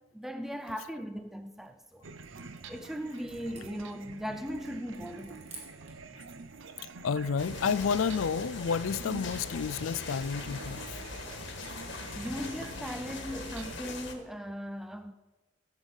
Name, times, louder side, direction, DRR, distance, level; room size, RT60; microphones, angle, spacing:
voice 1, 0.1-2.1 2.7-5.5 12.1-15.1, equal, ahead, 0.4 m, -38 dB
sound 1, 1.4-6.1, right 3 dB, 30° right, 2.7 m, -54 dB
sound 2, 2.0-13.8, right 4 dB, 65° right, 0.7 m, -47 dB
voice 2, 7.0-11.0, left 6 dB, 70° left, 0.4 m, -30 dB
sound 3, 7.4-14.1, left 3 dB, 55° left, 1.6 m, -41 dB
16.0 x 8.1 x 5.3 m
head